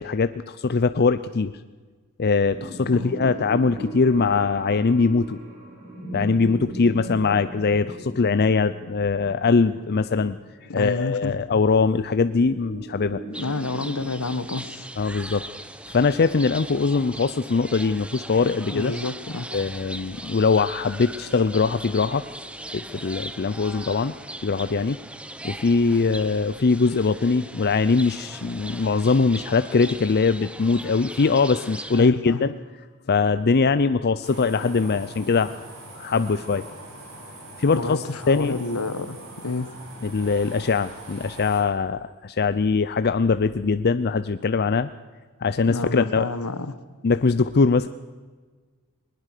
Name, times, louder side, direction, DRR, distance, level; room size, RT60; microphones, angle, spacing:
voice 1, 0.0-1.5 2.2-5.4 6.1-10.4 10.7-13.2 15.0-15.5 15.9-18.9 19.5-22.2 22.7-24.1 24.4-25.0 25.4-32.5 33.1-35.5 35.9-36.6 37.6-38.6 40.0-44.9 45.4-46.3 47.0-47.9, left 4 dB, 45° left, 12 dB, 0.5 m, -22 dB
sound 1, 2.5-14.1, right 1 dB, 35° right, 4.9 m, -39 dB
voice 2, 2.9-3.3 10.7-11.3 13.3-14.8 18.7-19.5 31.9-32.4 37.7-39.8 45.6-46.7, left 3 dB, 75° left, 13 dB, 1.3 m, -29 dB
sound 2, 13.3-32.1, right 1 dB, 5° right, 0.9 m, -39 dB
sound 3, 34.2-41.6, right 1 dB, 70° right, 7.4 m, -42 dB
21.0 x 20.0 x 6.6 m, 1.4 s
head